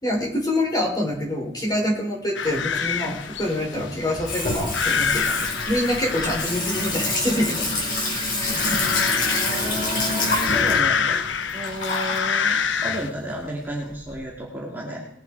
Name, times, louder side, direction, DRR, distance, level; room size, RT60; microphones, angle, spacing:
voice 1, 0.0-8.0 8.4-8.8, left 1 dB, 20° left, -1 dB, 4.0 m, -26 dB
sound 1, 2.3-13.1, left 6 dB, 70° left, 0.8 m, -27 dB
Water tap faucet / Sink (filling or washing), 2.4-14.1, left 2 dB, 45° left, 4.9 m, -28 dB
voice 2, 9.4-11.2 11.5-15.0, equal, 10° right, -4 dB, 2.4 m, -32 dB
20.5 x 8.1 x 4.6 m, 0.79 s
head